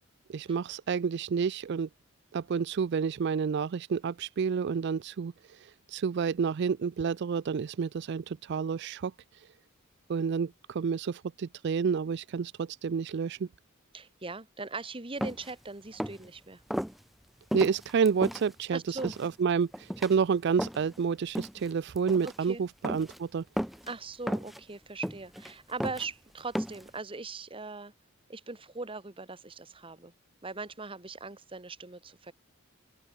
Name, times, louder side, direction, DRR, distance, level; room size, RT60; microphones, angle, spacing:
voice 1, 0.3-1.9 2.3-9.5 10.1-13.5 17.5-23.4, right 6 dB, 55° right, 0.4 m, -29 dB
voice 2, 13.9-16.6 18.7-19.1 22.2-22.6 23.9-27.9 28.3-30.1 30.4-32.3, right 3 dB, 25° right, 1.3 m, -40 dB
sound 1, 15.2-15.5 15.9-16.3 16.7-16.9 17.5-18.4 19.0-19.3 19.7-20.1 20.6-21.0 21.4-21.7 22.0-22.4 22.8-23.2 23.6-23.9 24.3-24.6 25.0-25.5 25.8-26.1 26.6-26.9, equal, ahead, 1.3 m, -34 dB
open air
head